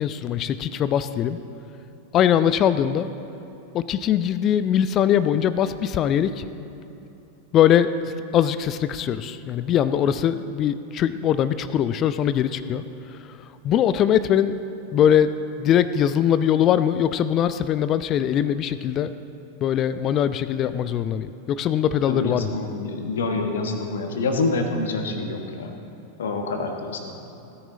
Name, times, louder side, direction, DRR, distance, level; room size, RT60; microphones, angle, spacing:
voice 1, 0.0-1.4 2.1-3.1 3.7-6.5 7.5-7.9 8.3-13.4 13.6-14.5 14.9-19.1 19.6-22.6, left 9 dB, 30° left, 13 dB, 0.4 m, -21 dB
voice 2, 22.1-25.7 26.2-27.0, left 3 dB, 60° left, 4 dB, 1.2 m, -26 dB
16.5 x 9.9 x 3.8 m, 2.9 s
figure-of-eight pair, 90°, 0 cm